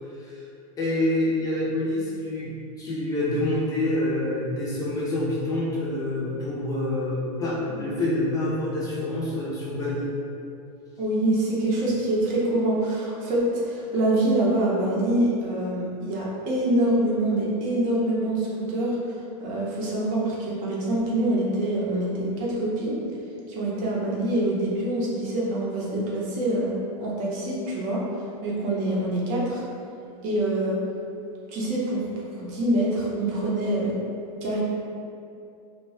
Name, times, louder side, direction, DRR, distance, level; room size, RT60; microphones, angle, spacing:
voice 1, 0.8-2.5 2.8-10.1, left 1 dB, 20° left, -7 dB, 0.5 m, -27 dB
voice 2, 11.0-19.1 19.4-23.0 23.5-28.0 28.4-29.6 30.2-30.8 31.5-33.9 34.4-34.6, right 1 dB, 45° right, -5 dB, 0.7 m, -25 dB
2.6 x 2.2 x 3.0 m, 2.5 s
supercardioid pair, 140°, 19 cm